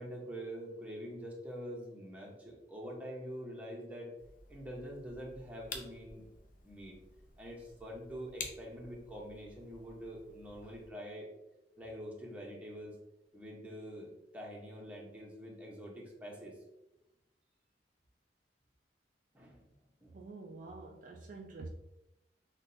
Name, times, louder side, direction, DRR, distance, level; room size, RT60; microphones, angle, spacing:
voice 1, 0.0-4.1 4.5-6.2 6.6-6.9 7.4-11.3 11.8-13.0 13.3-16.5 19.3-19.7 20.0-20.2, equal, 10° right, -3 dB, 0.8 m, -45 dB
sound 1, 4.2-10.9, left 4 dB, 50° left, 0.5 m, -50 dB
voice 2, 20.1-21.7, right 3 dB, 45° right, 2 dB, 0.3 m, -47 dB
5.9 x 2.2 x 2.6 m, 0.93 s
head